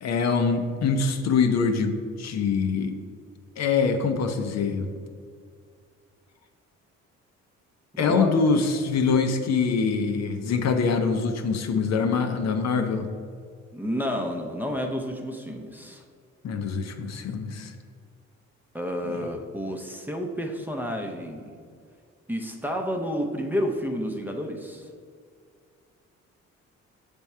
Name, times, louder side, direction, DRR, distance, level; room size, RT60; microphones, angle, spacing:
voice 1, 0.0-3.0 3.6-4.9 8.0-13.1 16.4-17.7 19.1-19.2, left 5 dB, 60° left, 7 dB, 0.6 m, -24 dB
voice 2, 7.9-8.3 13.7-16.0 18.7-21.6 22.3-24.9, equal, 5° right, 3 dB, 0.6 m, -30 dB
6.8 x 3.5 x 4.2 m, 2.1 s
cardioid pair, 90°, 30 cm